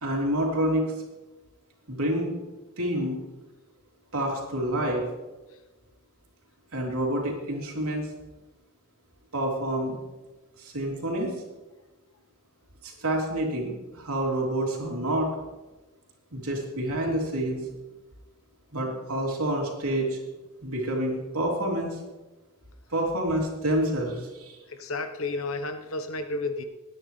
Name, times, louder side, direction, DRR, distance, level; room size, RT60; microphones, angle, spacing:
voice 1, 0.0-0.9 1.9-2.3 2.8-3.2 4.1-5.0 6.7-8.1 9.3-10.0 10.6-11.3 12.8-15.3 16.3-17.6 18.7-20.2 20.6-22.0 22.9-24.6, right 1 dB, 75° right, -1 dB, 3.1 m, -28 dB
voice 2, 24.7-26.6, left 3 dB, 65° left, 7 dB, 1.1 m, -32 dB
20.0 x 9.7 x 3.3 m, 1.1 s
head